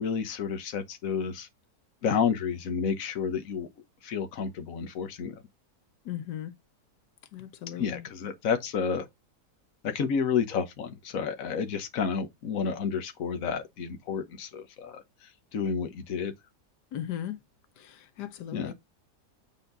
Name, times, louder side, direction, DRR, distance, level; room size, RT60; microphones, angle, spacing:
voice 1, 0.0-1.5 2.0-3.7 4.0-5.3 7.8-9.0 9.8-15.0 15.5-16.3 18.5-18.7, left 6 dB, 60° left, 1.4 m, -30 dB
voice 2, 6.0-6.5 7.3-8.1 16.9-17.4 17.8-18.7, left 11 dB, 85° left, 1.4 m, -37 dB
7.2 x 4.1 x 3.9 m
omnidirectional pair, 1.7 m